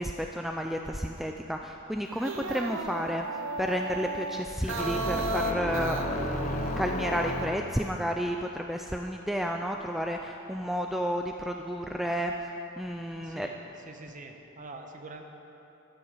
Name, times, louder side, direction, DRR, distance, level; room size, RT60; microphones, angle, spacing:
voice 1, 0.0-3.3 3.6-12.3 12.8-13.5, equal, ahead, 3 dB, 0.3 m, -31 dB
sound 1, 2.1-7.5, right 3 dB, 60° right, 0.8 m, -35 dB
sound 2, 4.7-7.9, left 2 dB, 35° left, 0.8 m, -33 dB
voice 2, 13.2-13.6 13.8-15.2, right 2 dB, 35° right, 3 dB, 1.0 m, -45 dB
12.5 x 11.0 x 5.5 m, 3.0 s
head